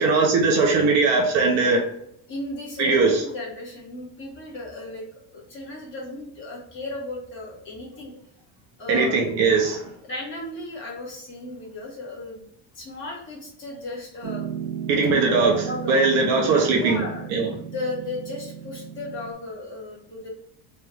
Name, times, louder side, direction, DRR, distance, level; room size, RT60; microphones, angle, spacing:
voice 1, 0.0-1.8 2.8-3.1 8.9-9.9 14.9-15.5 15.9-17.0 17.3-17.5, right 4 dB, 45° right, 1 dB, 0.6 m, -20 dB
voice 2, 2.3-5.0 5.3-8.1 8.8-9.1 10.0-12.5 12.7-14.5 14.9-16.0 16.8-17.3 17.7-20.3, left 2 dB, 30° left, -4 dB, 1.1 m, -35 dB
Piano, 14.2-19.3, right 8 dB, 85° right, 0.6 m, -35 dB
3.2 x 2.3 x 3.2 m, 0.71 s
cardioid pair, 180°, 37 cm